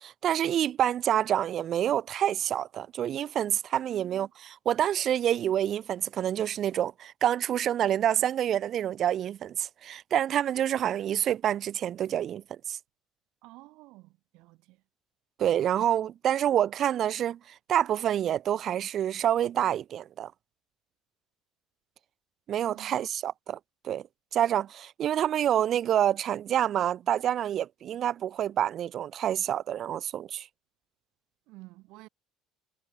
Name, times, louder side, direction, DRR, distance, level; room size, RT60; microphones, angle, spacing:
voice 1, 0.0-12.8 15.4-20.3 22.5-23.6 23.8-24.0 24.3-30.5, right 10 dB, 50° right, 0.3 m, -27 dB
voice 2, 3.9-4.3 13.4-14.8 22.5-23.0 31.5-32.1, right 21 dB, 75° right, 1.1 m, -50 dB
supercardioid pair, 85°, 0 cm